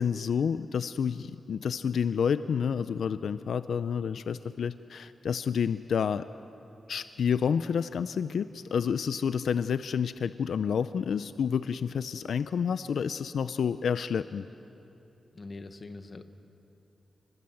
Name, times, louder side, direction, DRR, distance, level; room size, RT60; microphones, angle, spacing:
voice 1, 0.0-6.3 6.9-14.5, left 7 dB, 75° left, 13 dB, 0.5 m, -29 dB
voice 2, 15.3-16.2, left 3 dB, 35° left, 9 dB, 1.2 m, -43 dB
27.0 x 21.5 x 7.9 m, 2.9 s
wide cardioid pair, 150°, 0 cm